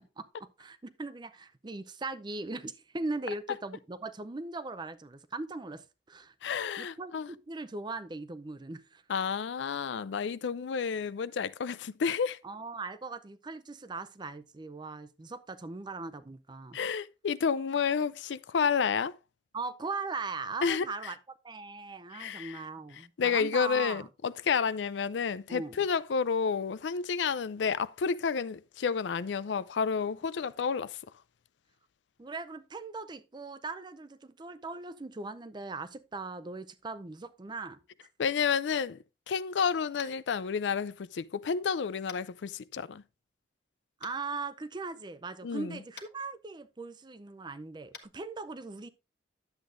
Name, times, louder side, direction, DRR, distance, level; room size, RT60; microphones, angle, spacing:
voice 1, 0.2-6.3 6.8-9.0 12.4-16.8 19.5-21.2 21.4-24.1 25.5-25.8 32.2-37.8 44.0-48.9, right 3 dB, 25° right, 0.5 m, -39 dB
voice 2, 6.4-7.3 9.1-12.4 16.7-19.1 20.6-21.1 22.1-22.6 23.2-31.0 38.2-39.0 39.3-43.0 45.4-45.8, left 6 dB, 90° left, 0.4 m, -30 dB
Tap, 39.9-40.2 42.1-42.2 44.0-44.1 45.9-46.1 47.9-48.0, left 6 dB, 60° left, 1.3 m, -47 dB
10.5 x 7.9 x 2.6 m
head